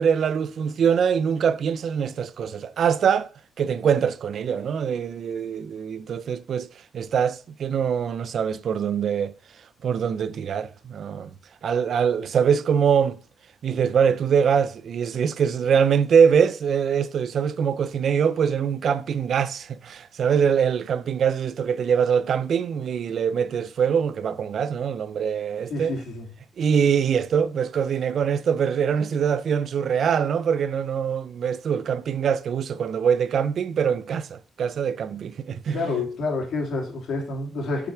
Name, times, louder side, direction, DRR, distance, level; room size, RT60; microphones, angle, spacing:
voice 1, 0.0-3.3 3.6-6.7 6.9-9.3 9.8-11.3 11.6-13.2 13.6-26.0 26.6-35.8, right 7 dB, 65° right, 0.6 m, -23 dB
voice 2, 25.7-26.3 35.7-37.9, left 3 dB, 70° left, 2.9 m, -28 dB
6.8 x 6.0 x 4.8 m
supercardioid pair, 70°, 0 cm